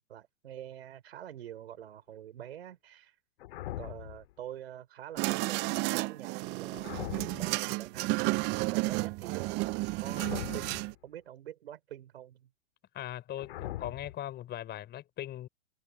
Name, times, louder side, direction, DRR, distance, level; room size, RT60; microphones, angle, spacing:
voice 1, 0.0-3.2 3.8-12.5, right 11 dB, 70° right, 4.7 m, -46 dB
sound 1, 3.4-4.3 6.7-7.6 10.0-11.0 13.4-14.2, left 15 dB, 65° left, 2.5 m, -41 dB
sound 2, 5.2-10.9, right 25 dB, 35° right, 0.5 m, -32 dB
voice 2, 12.9-15.5, left 12 dB, 30° left, 3.9 m, -40 dB
hypercardioid pair, 105°, 32 cm